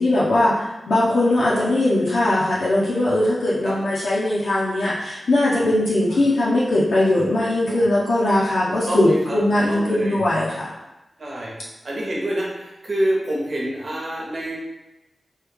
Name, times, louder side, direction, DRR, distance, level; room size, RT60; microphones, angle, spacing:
voice 1, 0.0-10.7, left 1 dB, 85° left, -9 dB, 0.7 m, -20 dB
voice 2, 8.7-9.4 9.7-10.2 11.2-14.6, right 1 dB, 55° right, -4 dB, 1.0 m, -27 dB
3.2 x 2.3 x 3.4 m, 1.0 s
wide cardioid pair, 70°, 0 cm